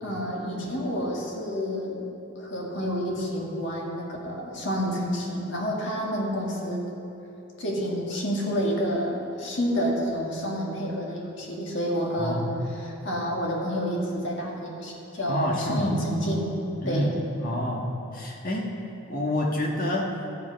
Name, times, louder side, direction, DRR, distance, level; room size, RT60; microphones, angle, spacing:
voice 1, 0.0-2.1 2.4-6.9 7.6-16.5 16.8-17.2, equal, 55° left, -2 dB, 1.9 m, -29 dB
voice 2, 12.2-12.5 15.3-16.2 16.8-17.1 17.4-18.6 19.1-20.0, left 1 dB, 40° left, -2 dB, 1.5 m, -28 dB
12.0 x 8.3 x 5.2 m, 3.0 s
head